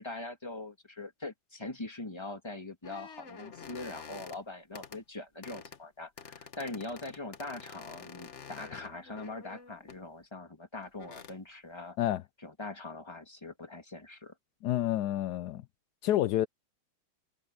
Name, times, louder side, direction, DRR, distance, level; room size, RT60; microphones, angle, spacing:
voice 1, 0.0-12.0 12.4-14.3, left 2 dB, 10° left, 2.4 m, -42 dB
sound 1, 2.8-4.4 4.7-5.0 5.4-5.8 6.2-10.0 10.8-11.4, left 6 dB, 40° left, 1.3 m, -48 dB
voice 2, 14.6-15.6 16.0-16.5, left 13 dB, 80° left, 0.9 m, -28 dB
omnidirectional pair, 2.3 m